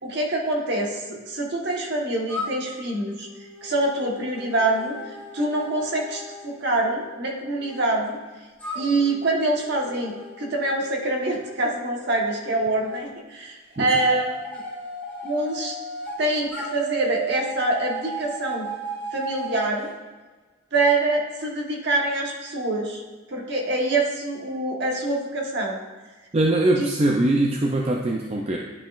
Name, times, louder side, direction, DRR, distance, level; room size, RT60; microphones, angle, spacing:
voice 1, 0.0-3.3 3.6-8.2 8.7-14.6 15.2-15.8 16.2-18.7 19.1-19.9 20.7-23.0 23.3-25.8 26.8-26.9, right 2 dB, 50° right, -1 dB, 1.2 m, -25 dB
sound 1, 2.3-7.8 8.6-13.0 13.9-16.2 16.5-19.7, right 2 dB, 10° left, 1.4 m, -36 dB
voice 2, 26.3-28.6, right 1 dB, 30° right, 0 dB, 0.4 m, -22 dB
10.5 x 5.2 x 2.5 m, 1.3 s
head